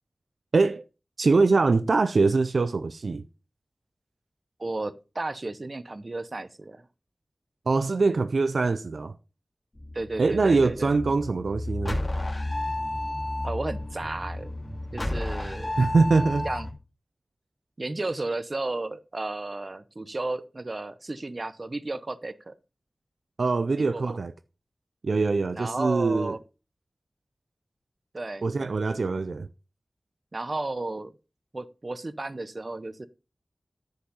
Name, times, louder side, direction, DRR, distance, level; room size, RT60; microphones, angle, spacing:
voice 1, 0.5-0.8 1.2-3.2 7.7-9.2 10.2-12.0 15.8-16.5 23.4-24.3 25.0-26.3 28.4-29.5, right 3 dB, 85° right, 0.4 m, -23 dB
voice 2, 4.6-6.9 9.9-11.0 13.4-14.5 14.9-15.7 16.4-16.7 17.8-22.5 23.8-24.2 25.5-26.4 28.1-28.4 30.3-31.1 31.5-33.1, right 2 dB, 50° right, 0.8 m, -33 dB
sound 1, 9.8-16.7, left 1 dB, 30° left, 2.5 m, -32 dB
10.5 x 5.3 x 5.5 m
wide cardioid pair, 60°, 0 cm